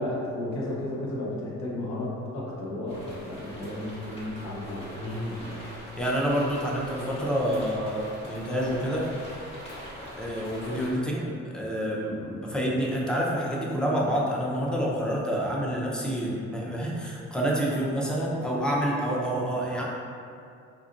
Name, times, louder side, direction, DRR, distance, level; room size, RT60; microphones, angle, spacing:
voice 1, 0.0-5.2, left 1 dB, 65° left, -5 dB, 1.0 m, -33 dB
sound 1, 2.9-10.9, equal, 20° left, 1.0 m, -42 dB
voice 2, 5.0-5.6 6.0-9.1 10.1-11.2 11.5-19.8, equal, 5° left, -4 dB, 0.6 m, -28 dB
4.3 x 2.6 x 2.4 m, 2.5 s
cardioid pair, 90°, 30 cm